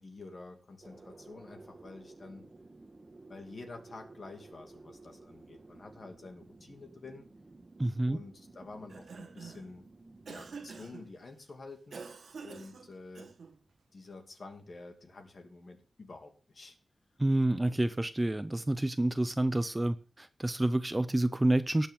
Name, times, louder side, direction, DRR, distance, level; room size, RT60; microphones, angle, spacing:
voice 1, 0.0-2.5 3.3-7.3 8.1-9.8 10.3-12.0 12.4-13.3 13.9-16.8, left 3 dB, 45° left, 4 dB, 2.5 m, -49 dB
sound 1, 0.8-10.9, right 3 dB, 30° right, 1.3 m, -54 dB
voice 2, 7.8-8.2 17.2-21.9, right 1 dB, 15° right, 12 dB, 0.5 m, -28 dB
Cough, 8.7-9.7 10.3-11.1 11.9-13.6, right 5 dB, 70° right, 1.6 m, -47 dB
19.0 x 7.0 x 3.7 m, 0.39 s
wide cardioid pair, 165°, 0 cm